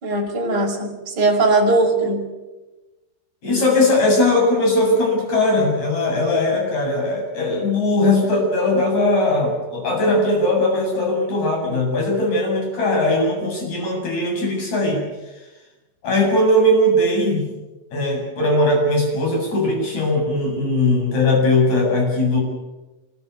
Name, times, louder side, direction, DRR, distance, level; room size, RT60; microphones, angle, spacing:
voice 1, 0.0-2.2, right 2 dB, 20° right, -1 dB, 5.4 m, -19 dB
voice 2, 3.4-15.0 16.0-17.5 17.9-22.4, left 1 dB, 35° left, 1 dB, 8.7 m, -19 dB
26.0 x 21.0 x 8.3 m, 1.1 s
omnidirectional pair, 5.7 m